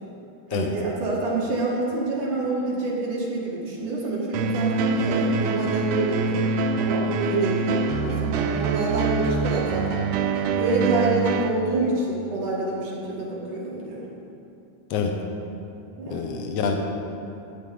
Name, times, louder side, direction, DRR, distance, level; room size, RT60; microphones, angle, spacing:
voice 1, 0.5-6.4 6.8-10.0 10.6-14.0 16.0-16.3, right 2 dB, 60° right, -5 dB, 3.3 m, -27 dB
sound 1, 4.3-11.5, right 4 dB, 85° right, 1.8 m, -25 dB
voice 2, 16.1-16.8, left 6 dB, 85° left, 3 dB, 1.4 m, -26 dB
15.0 x 5.4 x 9.3 m, 2.8 s
omnidirectional pair, 4.4 m